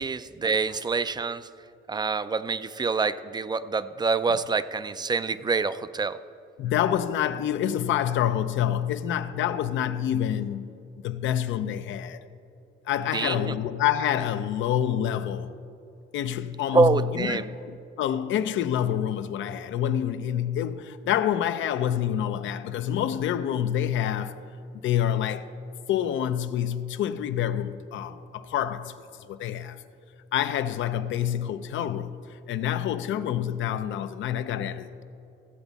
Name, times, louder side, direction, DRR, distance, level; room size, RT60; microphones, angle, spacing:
voice 1, 0.0-1.5 1.9-6.2 13.1-13.6 16.7-17.5, right 4 dB, 20° right, 0.4 m, -26 dB
voice 2, 6.6-10.8 11.0-12.2 12.9-15.5 16.1-24.4 24.8-25.5 25.9-28.9 29.3-29.8 30.3-35.0, left 10 dB, 75° left, 0.5 m, -27 dB
15.0 x 7.9 x 4.1 m
cardioid pair, 90°, 20 cm